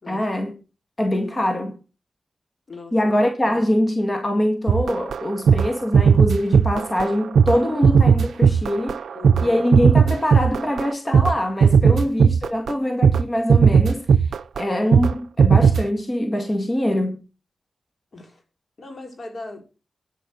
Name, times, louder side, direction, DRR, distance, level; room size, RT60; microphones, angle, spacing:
voice 1, 0.1-0.5 1.0-1.7 2.9-9.0 9.4-14.1 14.6-17.2, left 1 dB, 30° left, 2.1 m, -23 dB
voice 2, 2.7-3.1 3.5-3.6 9.2-9.6 11.9-12.1 18.1-18.4 18.8-19.6, left 2 dB, 60° left, 3.6 m, -39 dB
sound 1, 4.7-11.3 11.6-12.7 13.0-13.2 13.5-14.6 14.9-15.1 15.4-15.8, right 6 dB, 85° right, 0.4 m, -16 dB
10.0 x 6.6 x 6.3 m
cardioid pair, 50°, 0 cm